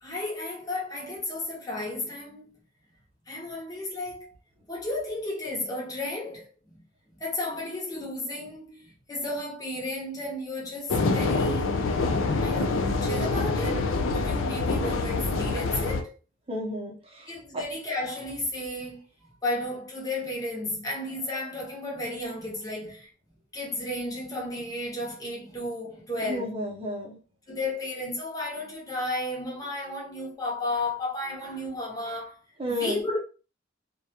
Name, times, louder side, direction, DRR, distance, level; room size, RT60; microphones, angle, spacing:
voice 1, 0.0-2.5 3.3-4.3 4.7-6.7 7.2-11.7 12.4-16.1 17.3-19.0 19.4-23.1 23.5-26.5 27.5-32.3 32.7-33.2, left 1 dB, 20° left, 0.7 m, -33 dB
sound 1, 10.9-16.0, left 3 dB, 70° left, 0.4 m, -26 dB
voice 2, 16.5-17.3 26.2-27.2 32.6-33.0, left 1 dB, 30° right, 0.7 m, -32 dB
2.3 x 2.2 x 2.8 m
head